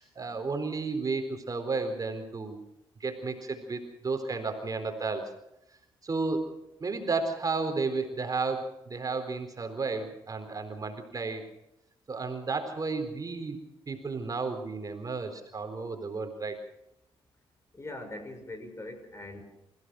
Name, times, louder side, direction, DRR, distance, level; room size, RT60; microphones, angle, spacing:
voice 1, 0.0-2.6 3.0-5.3 6.0-6.5 6.8-11.5 12.1-13.6 13.9-16.6, right 4 dB, 40° right, 5 dB, 4.0 m, -32 dB
voice 2, 17.7-19.4, left 2 dB, 30° left, 7 dB, 6.3 m, -41 dB
27.5 x 16.5 x 6.3 m, 0.83 s
cardioid pair, 75°, 10 cm